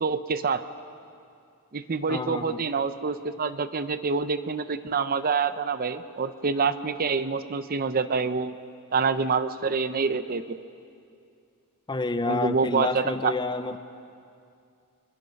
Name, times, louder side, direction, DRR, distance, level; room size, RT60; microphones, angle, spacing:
voice 1, 0.0-0.6 1.7-8.5 8.9-10.6 12.3-13.3, right 5 dB, 40° right, 12 dB, 0.6 m, -26 dB
voice 2, 2.1-2.6 11.9-13.8, left 3 dB, 20° left, 10 dB, 0.6 m, -29 dB
25.0 x 21.5 x 5.3 m, 2.4 s
head